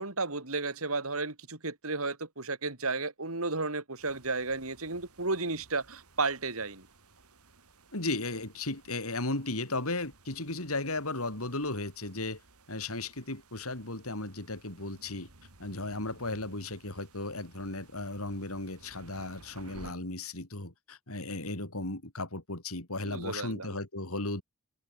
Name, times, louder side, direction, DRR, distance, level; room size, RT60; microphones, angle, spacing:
voice 1, 0.0-6.9 23.0-23.7, right 3 dB, 70° right, 3.8 m, -33 dB
sound 1, 4.0-19.9, right 2 dB, 90° right, 5.8 m, -57 dB
voice 2, 7.9-12.4 12.7-15.3 15.6-24.4, left 2 dB, 75° left, 5.2 m, -35 dB
head